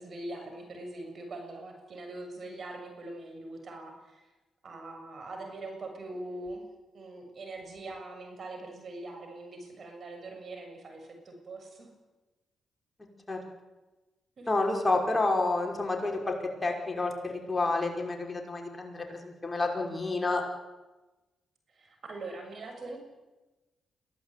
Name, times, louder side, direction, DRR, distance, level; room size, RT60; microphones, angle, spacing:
voice 1, 0.0-4.2 4.6-6.7 6.9-11.9 14.4-14.5 21.7-23.0, right 2 dB, 55° right, 4 dB, 7.0 m, -42 dB
voice 2, 14.5-20.4, left 2 dB, 20° left, 1 dB, 5.8 m, -29 dB
23.5 x 17.5 x 9.4 m, 1.1 s
cardioid pair, 65°, 0 cm